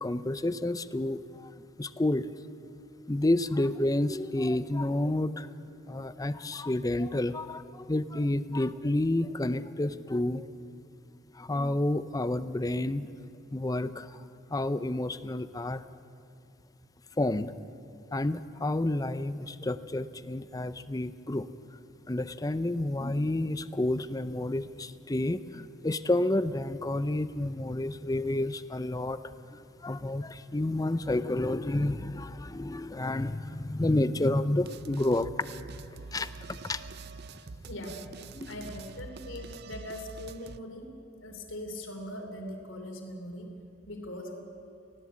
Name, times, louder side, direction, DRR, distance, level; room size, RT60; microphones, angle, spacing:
voice 1, 0.0-1.5 1.8-2.3 3.1-5.5 5.9-10.5 11.4-13.1 13.5-14.2 14.5-15.8 17.2-17.5 18.1-21.5 22.1-29.2 29.5-35.4 35.7-35.8 36.1-36.8 37.6-37.7 38.3-38.5, left 1 dB, 15° left, 14 dB, 0.5 m, -30 dB
sound 1, 34.6-40.6, right 4 dB, 50° right, 0.5 m, -45 dB
voice 2, 37.7-38.0 38.5-40.9 41.2-43.5 43.9-44.4, left 1 dB, 70° left, 2 dB, 3.0 m, -41 dB
18.5 x 16.5 x 8.5 m, 2.5 s
head